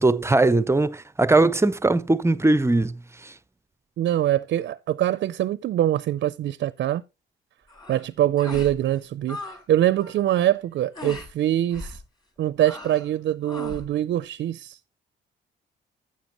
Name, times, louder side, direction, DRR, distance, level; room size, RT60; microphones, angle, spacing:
voice 1, 0.0-3.3, right 2 dB, 15° right, 0.5 m, -20 dB
voice 2, 4.0-7.0 7.9-12.0 12.4-15.0, right 12 dB, 60° right, 0.5 m, -24 dB
sound 1, 7.7-8.0 8.4-8.8 9.0-9.6 9.9-10.2 10.9-11.3 11.7-12.0 12.6-13.1 13.4-13.9, left 2 dB, 20° left, 4.6 m, -38 dB
12.0 x 7.7 x 2.9 m
cardioid pair, 90°, 20 cm